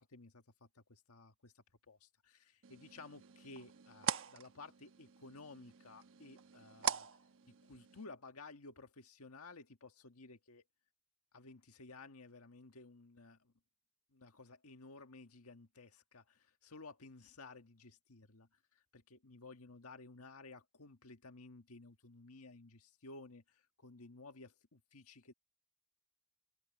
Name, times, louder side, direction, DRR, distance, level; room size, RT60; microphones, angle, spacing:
voice 1, 0.0-7.1 7.4-10.6 11.3-13.5 14.1-25.3, left 3 dB, 85° left, 1.6 m, -55 dB
sound 1, 2.6-8.0, right 7 dB, 65° right, 1.1 m, -43 dB
head